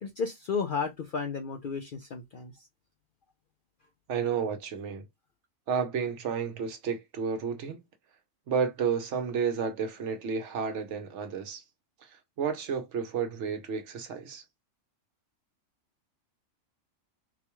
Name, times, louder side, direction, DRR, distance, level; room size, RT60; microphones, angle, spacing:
voice 1, 0.0-2.7, left 5 dB, 60° left, 0.5 m, -33 dB
voice 2, 4.1-5.0 5.7-7.8 8.5-11.6 12.0-14.4, right 6 dB, 65° right, 1.0 m, -31 dB
4.0 x 2.2 x 2.9 m
omnidirectional pair, 1.4 m